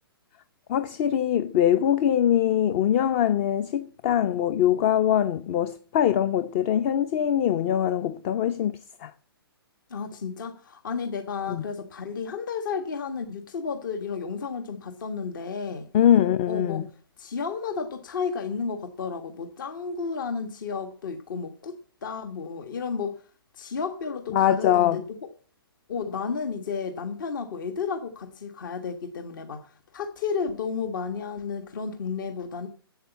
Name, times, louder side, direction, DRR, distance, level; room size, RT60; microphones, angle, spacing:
voice 1, 0.7-8.7 9.0-9.1 11.5-11.6 15.9-16.8 24.3-25.0, left 10 dB, 30° left, 0.7 m, -22 dB
voice 2, 9.9-15.9 16.5-16.8 17.2-21.7 22.0-23.1 23.5-25.0 25.9-32.7, left 5 dB, 55° left, 1.5 m, -32 dB
11.0 x 8.3 x 8.1 m
figure-of-eight pair, 125°, 13 cm